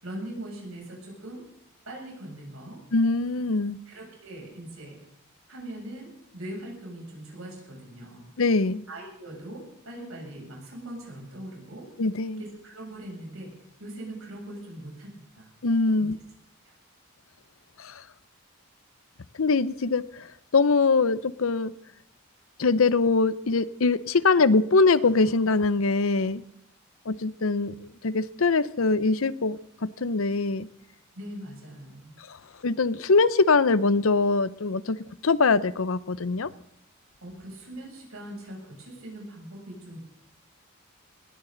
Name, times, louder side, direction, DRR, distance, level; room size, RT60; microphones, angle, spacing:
voice 1, 0.0-1.4 1.9-2.8 3.9-5.0 5.5-8.3 8.9-11.9 12.4-13.5 13.8-15.5 16.0-16.1 16.7-16.8 31.1-32.2 37.2-40.0, right 1 dB, 80° right, 7.5 m, -41 dB
voice 2, 2.9-3.8 8.4-8.8 12.0-12.4 15.6-16.2 17.8-18.0 19.4-20.3 20.5-21.7 22.6-26.4 27.1-30.7 32.6-35.0 35.2-36.5, left 3 dB, 70° left, 0.7 m, -23 dB
20.5 x 17.5 x 4.0 m
head